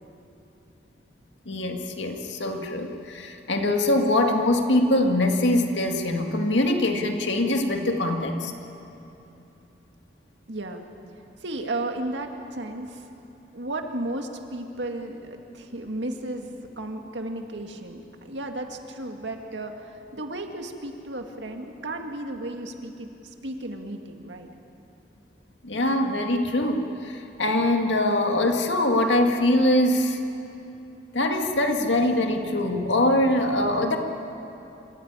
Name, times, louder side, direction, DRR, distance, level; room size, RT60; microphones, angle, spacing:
voice 1, 1.5-8.5 25.6-30.2 31.1-34.0, left 1 dB, 85° left, 3 dB, 2.1 m, -23 dB
voice 2, 10.5-10.8 11.4-13.1 13.5-24.5, right 1 dB, 85° right, 4 dB, 2.0 m, -34 dB
26.0 x 15.0 x 9.7 m, 2.9 s
head